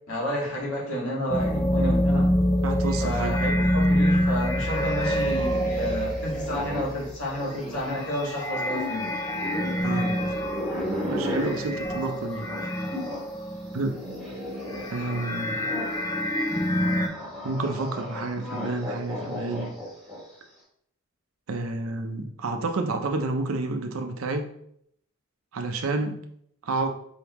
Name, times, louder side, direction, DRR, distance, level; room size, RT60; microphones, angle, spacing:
voice 1, 0.1-2.3 3.0-9.1, equal, 80° left, -5 dB, 1.8 m, -30 dB
sound 1, 1.3-14.1 14.4-17.1, equal, 15° left, 0.4 m, -26 dB
voice 2, 2.6-3.4 9.8-10.2 11.1-12.5 13.7-14.0 14.9-15.7 17.4-19.7 21.5-24.5 25.5-26.2 26.6-26.9, right 3 dB, 75° right, 6 dB, 0.6 m, -29 dB
sound 2, 4.6-13.3 13.6-20.4, left 1 dB, ahead, 1.2 m, -36 dB
4.7 x 3.4 x 3.0 m, 0.71 s
head